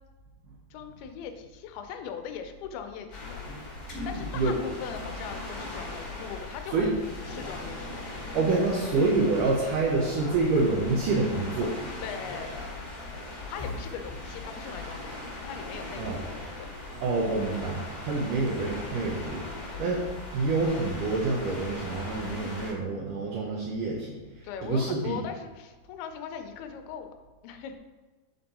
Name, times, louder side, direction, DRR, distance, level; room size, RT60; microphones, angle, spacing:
voice 1, 0.7-3.4 3.8-8.3 12.0-12.8 13.5-16.7 19.7-20.1 24.4-27.1 27.4-27.7, left 7 dB, 85° left, 6 dB, 2.6 m, -40 dB
sound 1, 3.1-22.7, left 2 dB, 50° left, 1.1 m, -39 dB
voice 2, 8.3-11.7 16.0-16.2 17.0-19.4 19.8-20.0 20.3-25.2, right 3 dB, 70° right, -3 dB, 2.3 m, -27 dB
8.9 x 4.4 x 4.2 m, 1.2 s
omnidirectional pair, 4.4 m